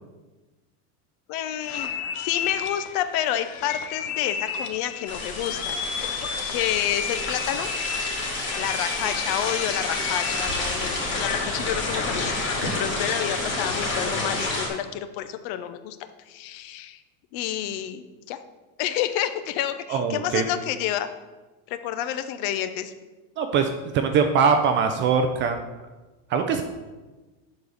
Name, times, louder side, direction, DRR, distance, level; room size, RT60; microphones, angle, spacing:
voice 1, 1.3-7.7 8.6-16.0 16.3-17.0 17.3-18.4 18.8-21.1 21.7-22.9, left 11 dB, 50° left, 10 dB, 0.7 m, -29 dB
sound 1, 1.6-12.8, left 7 dB, 80° left, 1.0 m, -33 dB
sound 2, 5.1-14.7, left 2 dB, 25° left, 2.5 m, -29 dB
voice 2, 19.9-20.4 23.4-23.7 23.9-25.6 26.3-26.6, right 6 dB, 30° right, 6 dB, 0.4 m, -22 dB
9.7 x 4.0 x 6.3 m, 1.2 s
supercardioid pair, 150°, 44 cm